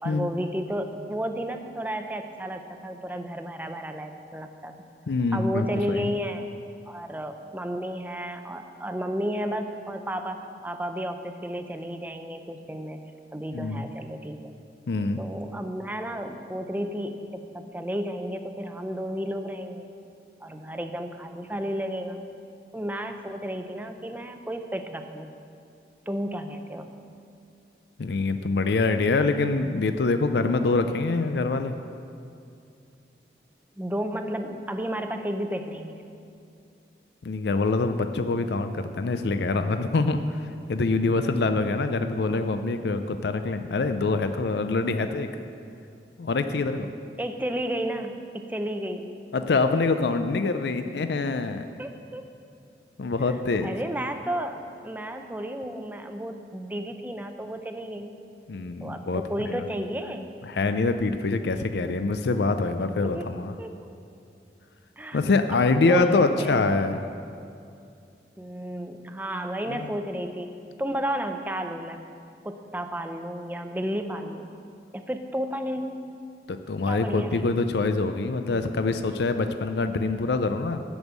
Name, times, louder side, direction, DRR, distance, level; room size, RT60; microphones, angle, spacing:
voice 1, 0.0-4.7 5.3-6.4 6.9-13.0 13.3-14.5 15.2-19.8 20.4-22.3 22.7-25.3 26.1-26.9 33.8-36.0 41.2-41.3 47.2-49.1 51.8-52.2 53.6-58.2 58.8-60.3 63.0-63.3 63.6-63.8 65.0-65.2 65.7-66.6 68.4-70.5 70.8-72.0 72.4-74.5 74.9-76.1 76.9-77.5, equal, 10° right, 6 dB, 0.5 m, -32 dB
voice 2, 5.1-6.0 13.5-13.9 14.9-15.2 28.0-31.7 37.2-40.4 40.7-45.3 46.2-46.9 49.3-51.6 53.0-53.7 58.5-59.5 60.5-63.5 65.1-67.0 69.7-69.8 76.5-80.8, left 3 dB, 75° left, 8 dB, 0.5 m, -25 dB
12.5 x 5.4 x 8.1 m, 2.5 s
head